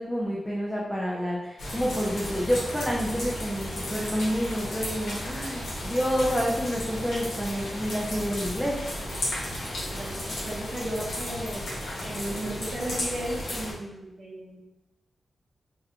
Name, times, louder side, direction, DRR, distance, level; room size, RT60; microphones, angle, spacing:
voice 1, 0.0-8.8, equal, ahead, -4 dB, 0.4 m, -28 dB
sound 1, 1.6-13.7, left 1 dB, 90° left, 0.9 m, -34 dB
voice 2, 9.9-11.7 12.0-14.6, right 1 dB, 50° right, -6 dB, 0.7 m, -35 dB
2.7 x 2.2 x 3.6 m, 1.0 s
wide cardioid pair, 120°, 0 cm